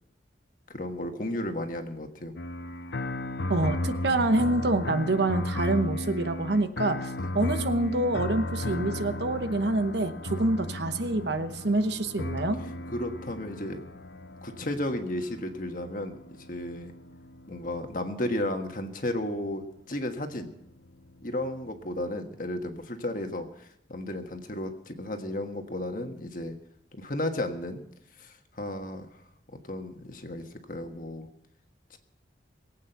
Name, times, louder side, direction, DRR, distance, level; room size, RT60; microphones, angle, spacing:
voice 1, 0.7-2.3 7.2-7.3 10.4-10.5 12.9-13.8 14.4-16.2 16.5-16.9 17.5-20.5 21.2-26.6 26.9-27.8 28.2-29.2 29.6-31.3 31.9-32.0, left 1 dB, 45° left, 5 dB, 1.5 m, -33 dB
sound 1, 2.4-19.5 20.3-22.2, left 1 dB, 65° left, 0.8 m, -36 dB
voice 2, 3.5-7.1 7.3-12.6, right 2 dB, 65° right, 9 dB, 1.0 m, -26 dB
21.5 x 8.6 x 5.8 m, 0.77 s
head